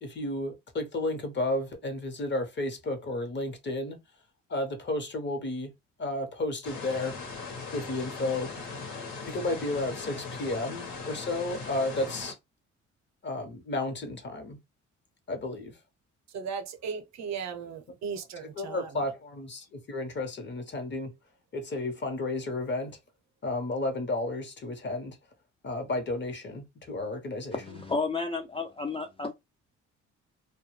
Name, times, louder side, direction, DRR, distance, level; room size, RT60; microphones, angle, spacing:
voice 1, 0.0-4.0 4.5-5.7 6.0-7.2 7.7-8.5 9.3-12.3 13.2-14.6 15.3-15.8 18.6-21.1 21.5-23.0 23.4-25.2 25.6-27.8, left 2 dB, 35° left, 0.9 m, -32 dB
sound 1, 6.6-12.3, left 4 dB, 80° left, 1.2 m, -39 dB
voice 2, 16.3-18.9, right 6 dB, 65° right, 0.7 m, -36 dB
voice 3, 27.5-29.3, left 4 dB, 20° left, 0.4 m, -32 dB
2.2 x 2.1 x 3.1 m
cardioid pair, 90°, 30 cm